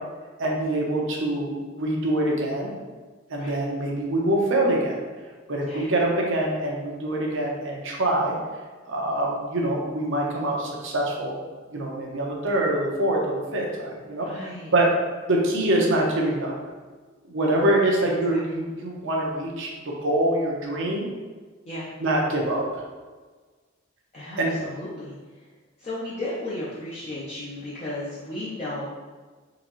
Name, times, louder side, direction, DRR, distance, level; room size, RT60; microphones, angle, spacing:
voice 1, 0.4-2.7 3.3-5.0 5.5-8.3 8.9-11.4 11.7-14.9 15.3-16.5 17.3-21.1 22.0-22.6 24.4-24.5, right 1 dB, 65° right, -1 dB, 0.8 m, -25 dB
voice 2, 14.2-14.7 18.0-18.4 21.6-21.9 24.1-25.5 25.8-28.8, left 1 dB, 30° left, -9 dB, 0.7 m, -35 dB
3.9 x 3.1 x 3.0 m, 1.4 s
head